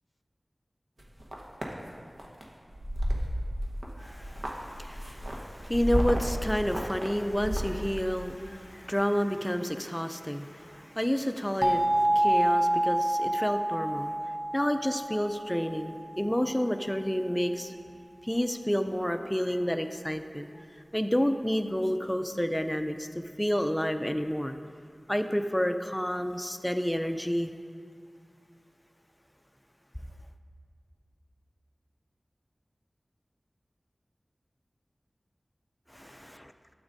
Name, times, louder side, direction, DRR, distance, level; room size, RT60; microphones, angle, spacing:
sound 1, 1.0-1.7 2.2-2.4 2.7-3.9 4.1-7.8, equal, 60° right, 1.1 m, -32 dB
voice 1, 4.0-14.1 14.5-17.7 18.2-20.6 20.9-24.6 25.1-27.5 35.9-36.1, equal, 10° left, 8 dB, 0.4 m, -30 dB
sound 2, 11.6-16.3, right 1 dB, 20° right, 0.9 m, -27 dB
12.5 x 8.0 x 2.6 m, 2.2 s
wide cardioid pair, 55°, 0 cm